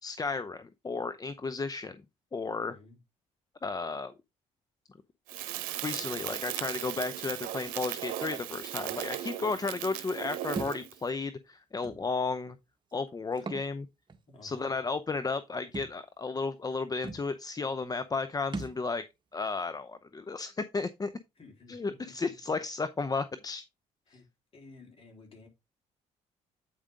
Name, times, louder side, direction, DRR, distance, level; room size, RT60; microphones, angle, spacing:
voice 1, 0.0-2.0 2.3-2.8 3.6-4.1 5.8-12.6 12.9-13.9 14.4-19.0 19.3-21.1 21.7-23.6, left 4 dB, 25° left, 0.7 m, -33 dB
voice 2, 2.6-3.0 13.4-13.5 14.3-14.7 21.4-22.4 24.1-24.3 24.5-25.5, left 3 dB, 40° left, 3.9 m, -53 dB
Crackle, 5.3-11.0, right 13 dB, 80° right, 0.9 m, -37 dB
Thump thud, 10.6-10.8 11.8-12.0 13.3-13.7 14.1-14.2 15.7-15.9 16.7-16.8 17.0-17.3 18.5-18.8, right 3 dB, 35° right, 1.5 m, -38 dB
8.8 x 5.0 x 3.7 m
supercardioid pair, 65°, 14 cm